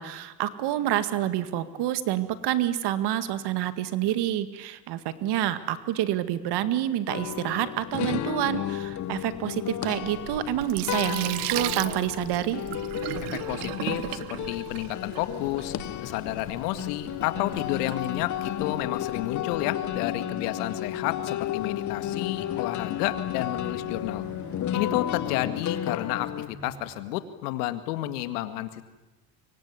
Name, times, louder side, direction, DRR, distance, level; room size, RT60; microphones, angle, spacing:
voice 1, 0.0-12.6, right 12 dB, 60° right, 12 dB, 2.0 m, -28 dB
sound 1, 7.1-26.5, left 11 dB, 40° left, 1.2 m, -33 dB
sound 2, 8.5-27.0, right 4 dB, 30° right, 2.9 m, -51 dB
Sink (filling or washing), 10.0-18.7, right 20 dB, 80° right, 1.0 m, -37 dB
voice 2, 13.2-15.7 16.0-24.2 24.7-28.8, left 14 dB, 85° left, 11 dB, 2.2 m, -31 dB
24.5 x 24.0 x 9.7 m, 1.1 s
supercardioid pair, 100°, 45 cm